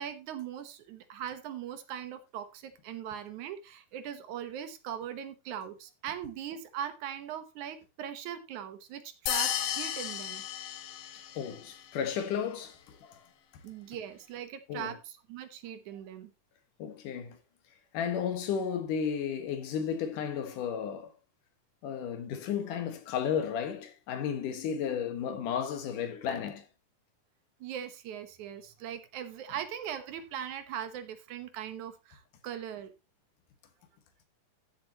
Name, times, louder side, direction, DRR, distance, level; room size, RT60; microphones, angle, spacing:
voice 1, 0.0-10.4 13.6-16.3 27.6-32.9, right 9 dB, 75° right, 2.4 m, -40 dB
sound 1, 9.3-11.5, left 10 dB, 70° left, 1.7 m, -33 dB
voice 2, 11.4-13.2 14.7-15.0 16.8-17.4 17.9-21.1 21.8-26.7, left 7 dB, 85° left, 3.1 m, -33 dB
14.0 x 7.6 x 2.9 m
omnidirectional pair, 3.6 m